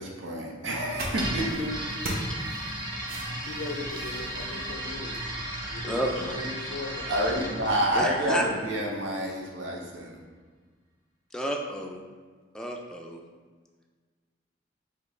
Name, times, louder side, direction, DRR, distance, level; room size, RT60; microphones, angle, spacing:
voice 1, 0.0-1.7 7.1-10.2, right 1 dB, 90° right, -1 dB, 0.7 m, -28 dB
sound 1, 0.6-5.3, right 1 dB, 50° right, 0.8 m, -39 dB
sound 2, 1.1-8.9, right 1 dB, 25° right, 0.8 m, -35 dB
voice 2, 3.4-5.2 5.7-7.2, left 3 dB, 85° left, 1 dB, 0.4 m, -39 dB
voice 3, 5.8-6.4 8.0-8.5 11.3-12.0 12.5-13.2, equal, 5° left, 0 dB, 0.3 m, -31 dB
5.1 x 2.2 x 3.7 m, 1.5 s
head